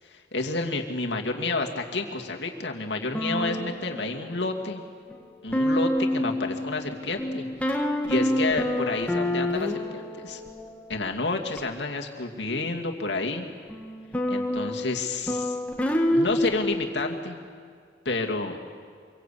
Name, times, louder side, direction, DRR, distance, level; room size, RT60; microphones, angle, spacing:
voice 1, 0.1-4.8 5.4-7.5 8.0-10.4 10.9-13.5 14.3-15.6 16.1-17.4 18.0-18.6, left 3 dB, 85° left, 2 dB, 2.6 m, -30 dB
sound 1, 3.1-4.4 5.1-5.2 5.5-11.0 11.6-11.7 13.7-17.2, left 1 dB, 10° left, 1.9 m, -28 dB
26.5 x 23.5 x 8.6 m, 2.1 s
head